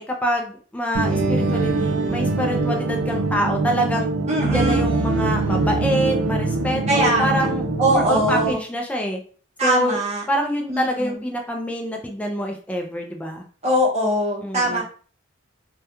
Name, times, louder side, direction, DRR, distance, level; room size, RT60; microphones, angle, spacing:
voice 1, 0.0-4.1 4.4-9.2 9.6-10.0 10.3-13.4 14.4-14.8, equal, 5° left, 1 dB, 0.3 m, -26 dB
sound 1, 0.9-8.5, right 3 dB, 65° right, 0.4 m, -23 dB
voice 2, 4.3-4.9 6.9-7.5 7.8-8.6 9.6-10.3 10.7-11.2 13.6-14.8, right 1 dB, 35° right, -3 dB, 0.8 m, -22 dB
2.3 x 2.1 x 2.8 m, 0.42 s
head